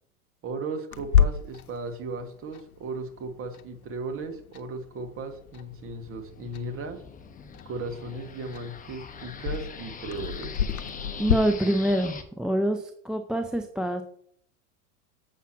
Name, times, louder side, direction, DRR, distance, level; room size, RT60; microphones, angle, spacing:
voice 1, 0.4-7.0 7.7-10.5, right 3 dB, 30° right, 6 dB, 1.7 m, -36 dB
Clock, 0.9-11.3, left 8 dB, 85° left, 0.8 m, -31 dB
sound 1, 4.9-12.2, left 6 dB, 20° left, 1.2 m, -43 dB
voice 2, 11.2-14.0, right 1 dB, ahead, 6 dB, 0.5 m, -26 dB
7.3 x 5.7 x 6.0 m, 0.64 s
hypercardioid pair, 95°, 43 cm